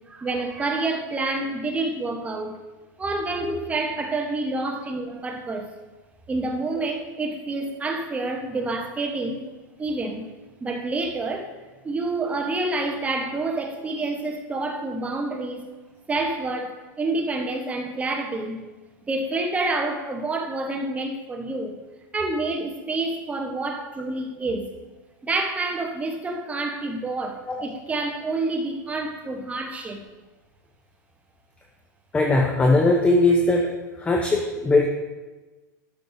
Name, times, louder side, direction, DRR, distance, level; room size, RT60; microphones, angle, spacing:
voice 1, 0.1-2.6 3.0-5.7 6.3-9.4 9.8-10.3 10.6-11.5 11.8-15.7 16.1-18.6 19.1-21.7 22.1-24.7 25.2-30.0, right 2 dB, 15° right, 3 dB, 1.0 m, -28 dB
voice 2, 32.1-33.7 34.0-34.9, left 2 dB, 10° left, 1 dB, 0.7 m, -19 dB
12.0 x 6.6 x 2.7 m, 1.2 s
hypercardioid pair, 135°, 11 cm